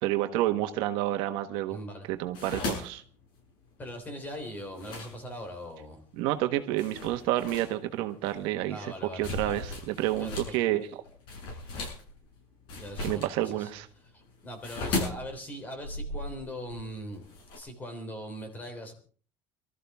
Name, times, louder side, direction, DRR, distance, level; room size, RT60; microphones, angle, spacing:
voice 1, 0.0-1.8 2.1-3.0 6.2-10.9 13.0-13.9, right 14 dB, 70° right, 8 dB, 1.4 m, -29 dB
voice 2, 1.7-2.1 3.8-6.0 8.7-9.6 10.1-10.6 12.7-13.7 14.1-17.3 17.5-18.9, equal, 20° left, 6 dB, 3.3 m, -41 dB
sound 1, 2.1-5.7 6.2-6.4 6.8-10.6 10.8-17.6, left 2 dB, 55° left, 7.3 m, -37 dB
24.5 x 13.5 x 3.6 m, 0.42 s
cardioid pair, 170°, 9 cm